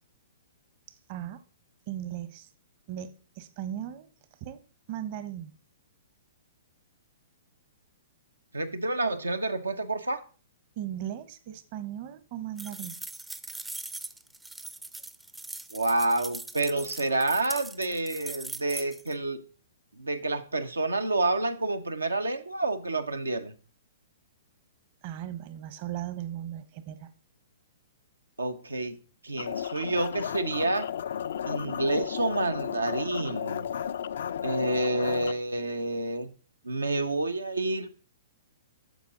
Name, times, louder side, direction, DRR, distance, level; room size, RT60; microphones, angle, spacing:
voice 1, 1.1-1.4 1.9-2.5 2.9-4.1 4.4-4.6 4.9-5.5 10.8-13.0 25.0-27.1, right 11 dB, 45° right, 1.0 m, -37 dB
voice 2, 8.5-10.2 15.7-19.4 20.0-23.5 28.4-29.0 29.2-30.9 31.4-33.7 34.4-36.3 36.6-37.9, right 2 dB, 90° right, 0.9 m, -29 dB
sound 1, 12.6-19.1, right 2 dB, 5° right, 0.5 m, -41 dB
sound 2, 29.4-35.3, left 9 dB, 65° left, 0.3 m, -33 dB
10.0 x 7.0 x 3.9 m
hypercardioid pair, 120°, 0 cm